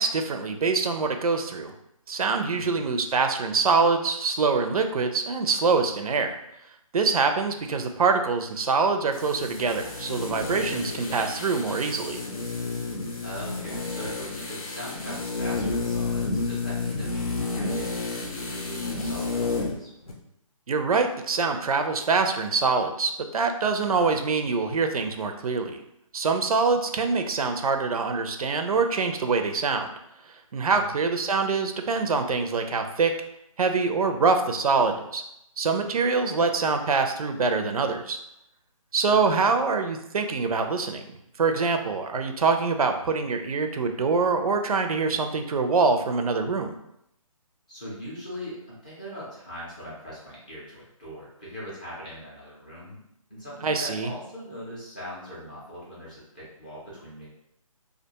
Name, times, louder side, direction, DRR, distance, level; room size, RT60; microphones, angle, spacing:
voice 1, 0.0-1.7 2.1-6.4 6.9-12.2 20.7-25.8 26.1-29.9 30.5-33.1 33.6-35.2 35.6-38.2 38.9-46.7 53.6-54.1, right 4 dB, 85° right, 6 dB, 0.4 m, -24 dB
sound 1, 9.1-19.8 20.1-20.2, left 3 dB, 85° left, 0.7 m, -31 dB
voice 2, 13.2-19.9 30.7-31.0 47.7-53.0 53.3-57.3, equal, 15° left, -8 dB, 0.4 m, -41 dB
2.4 x 2.2 x 2.8 m, 0.78 s
hypercardioid pair, 170°, 18 cm